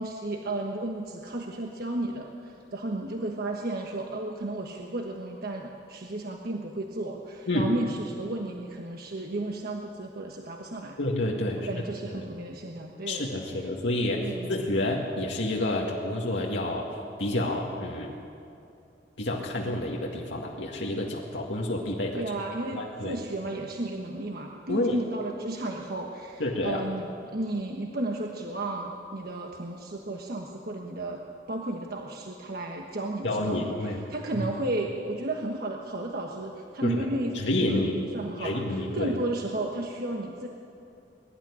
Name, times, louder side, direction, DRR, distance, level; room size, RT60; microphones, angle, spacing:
voice 1, 0.0-11.0 11.7-13.2 14.2-14.6 22.1-31.2 31.5-40.5, right 2 dB, 55° right, 1 dB, 1.3 m, -33 dB
voice 2, 11.0-11.7 12.1-12.3 13.1-16.9 17.2-18.1 19.2-22.2 22.7-23.2 24.7-25.0 26.4-26.8 33.2-34.0 36.8-37.1 37.3-37.9 38.4-39.1, left 1 dB, 80° left, -2 dB, 2.1 m, -29 dB
22.0 x 12.0 x 10.0 m, 2.6 s
head